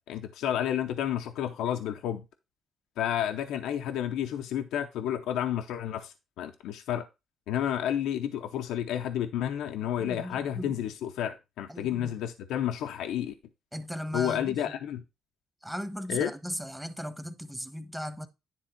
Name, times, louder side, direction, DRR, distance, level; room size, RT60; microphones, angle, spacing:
voice 1, 0.0-2.2 3.0-7.1 7.5-13.3 14.1-15.0 16.1-16.3, left 10 dB, 90° left, 0.7 m, -31 dB
voice 2, 10.0-10.8 11.7-12.1 13.7-14.7 15.6-18.3, equal, 5° right, 1.2 m, -37 dB
10.0 x 3.5 x 5.8 m
cardioid pair, 90°, 0 cm